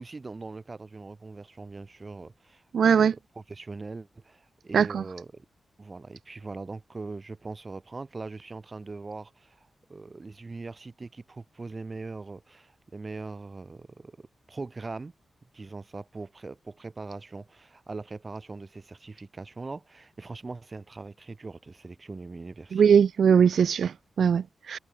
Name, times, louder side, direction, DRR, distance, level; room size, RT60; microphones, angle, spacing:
voice 1, 0.0-3.1 3.4-5.5 5.8-15.1 15.5-22.9, right 3 dB, 35° right, 5.6 m, -41 dB
voice 2, 2.7-3.1 4.7-5.0 22.7-24.8, right 7 dB, 80° right, 0.7 m, -21 dB
wide cardioid pair, 100°, 0 cm